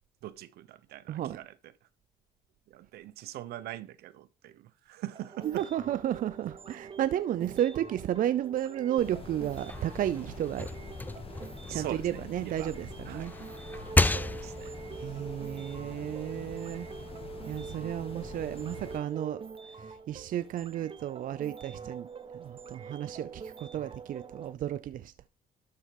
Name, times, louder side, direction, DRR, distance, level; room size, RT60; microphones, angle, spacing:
voice 1, 0.2-1.5 2.7-5.7 11.7-12.7 13.0-13.3 14.0-14.8, right 14 dB, 75° right, 0.9 m, -42 dB
voice 2, 1.1-1.4 5.4-10.7 11.7-13.3 14.9-16.9 17.5-25.1, right 11 dB, 55° right, 0.5 m, -33 dB
sound 1, 5.1-24.5, right 5 dB, 35° right, 1.1 m, -45 dB
sound 2, 9.0-19.0, left 4 dB, 35° left, 1.9 m, -46 dB
sound 3, 9.4-12.6 13.0-14.8, left 2 dB, 10° left, 0.4 m, -32 dB
12.5 x 4.6 x 5.3 m
cardioid pair, 85°, 16 cm